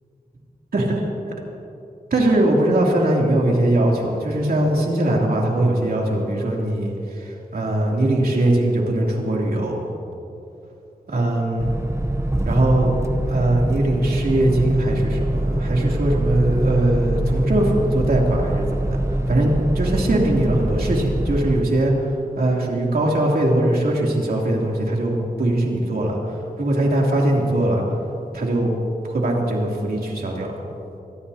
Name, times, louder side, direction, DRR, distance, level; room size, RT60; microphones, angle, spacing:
voice 1, 0.7-1.1 2.1-9.8 11.1-11.7 12.4-13.0 13.3-19.0 19.3-27.8 28.3-28.7 29.0-30.5, right 1 dB, 80° right, -2 dB, 2.9 m, -21 dB
sound 1, 11.6-21.6, right 1 dB, 20° right, 0.9 m, -24 dB
26.0 x 18.5 x 2.8 m, 2.8 s
wide cardioid pair, 115°, 15 cm